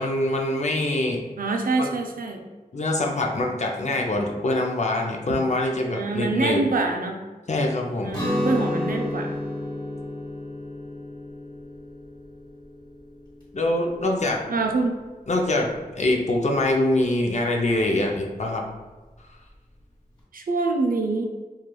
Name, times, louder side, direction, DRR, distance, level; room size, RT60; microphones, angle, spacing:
voice 1, 0.0-1.2 1.8-1.9 2.7-6.6 7.5-8.2 13.5-14.4 15.3-18.6, left 1 dB, 50° left, 1 dB, 0.4 m, -24 dB
voice 2, 1.4-2.4 5.9-7.2 8.0-9.3 14.5-15.0 20.3-21.3, right 3 dB, 65° right, 2 dB, 0.4 m, -25 dB
Guitar, 8.1-13.9, left 1 dB, 25° left, 1.5 m, -31 dB
3.1 x 2.3 x 2.2 m, 1.3 s
wide cardioid pair, 55°, 16 cm